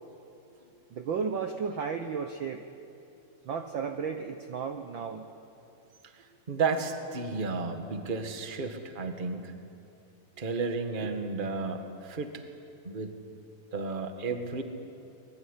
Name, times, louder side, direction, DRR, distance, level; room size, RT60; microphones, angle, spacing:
voice 1, 0.9-2.6 3.4-5.3 11.0-11.1, right 6 dB, 70° right, 6 dB, 1.1 m, -33 dB
voice 2, 6.5-9.5 10.4-11.8 12.1-12.3 12.8-13.1 13.7-14.6, right 4 dB, 25° right, 6 dB, 1.1 m, -32 dB
24.5 x 21.5 x 9.9 m, 2.6 s
omnidirectional pair, 3.7 m